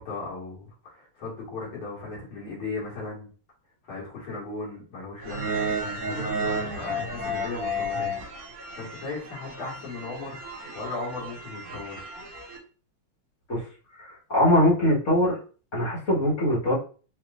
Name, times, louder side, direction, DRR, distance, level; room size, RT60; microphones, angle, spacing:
voice 1, 0.0-3.3 3.9-5.7 6.1-8.2 8.8-12.1, left 3 dB, 75° left, -4 dB, 2.7 m, -37 dB
sound 1, 5.2-12.6, right 1 dB, 50° right, 1.7 m, -32 dB
voice 2, 14.0-15.4 15.7-16.7, left 1 dB, 35° left, -6 dB, 1.7 m, -22 dB
4.9 x 3.0 x 2.5 m, 0.38 s
omnidirectional pair, 2.4 m